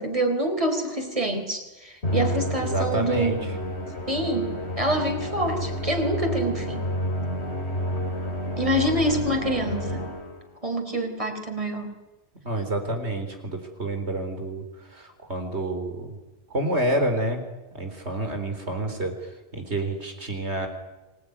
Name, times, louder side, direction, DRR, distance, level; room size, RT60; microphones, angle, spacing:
voice 1, 0.0-3.5 4.1-6.9 8.6-10.1 10.6-11.9, right 1 dB, 30° right, 4 dB, 4.3 m, -26 dB
Musical instrument, 2.0-10.6, equal, 75° left, 2.9 m, -30 dB
voice 2, 2.6-3.4 12.4-14.6 14.9-16.2 16.5-17.4 17.7-20.7, right 1 dB, 85° right, 6 dB, 4.4 m, -28 dB
26.0 x 19.5 x 9.6 m, 1.1 s
omnidirectional pair, 1.1 m